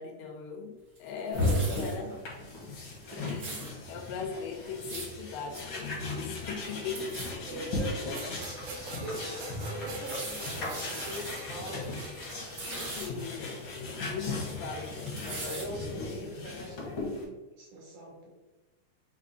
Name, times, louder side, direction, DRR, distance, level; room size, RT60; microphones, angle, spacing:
voice 1, 0.0-2.2 3.1-7.2 7.5-7.7 12.7-16.3, left 5 dB, 80° left, 3 dB, 2.1 m, -40 dB
sound 1, 1.0-1.9 2.5-2.6 2.9-3.7 4.6-5.1 5.5-5.6 5.9-6.0 6.3-6.6 6.9-7.3 7.9-8.0 8.5-8.6 9.7-11.4 11.7-11.8 12.1-13.1 13.5-14.5 14.8-15.6 16.1-16.2, right 2 dB, 55° right, 1.0 m, -41 dB
voice 2, 1.2-2.0 3.0-3.3 7.4-8.6 9.0-10.4 10.9-11.9 14.0-14.2 15.5-18.3, right 1 dB, 75° right, -3 dB, 1.9 m, -42 dB
sound 2, 1.3-17.2, left 2 dB, 65° left, 1.3 m, -36 dB
sound 3, 8.1-13.5, right 2 dB, 90° right, 1.4 m, -44 dB
5.4 x 2.8 x 2.6 m, 1.1 s
omnidirectional pair, 4.0 m